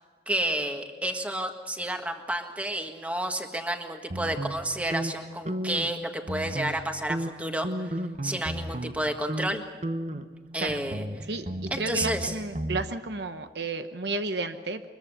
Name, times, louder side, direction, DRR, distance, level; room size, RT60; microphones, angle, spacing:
voice 1, 0.3-8.0 8.2-9.6 10.5-11.0 11.7-12.4, right 1 dB, 10° right, 4 dB, 1.7 m, -30 dB
sound 1, 4.1-6.0 6.2-6.8 7.1-9.0 9.3-9.5 9.8-12.8, right 1 dB, 40° right, 1.1 m, -34 dB
voice 2, 11.3-14.9, right 3 dB, 65° right, 8 dB, 1.0 m, -32 dB
23.5 x 22.0 x 6.8 m, 1.4 s
head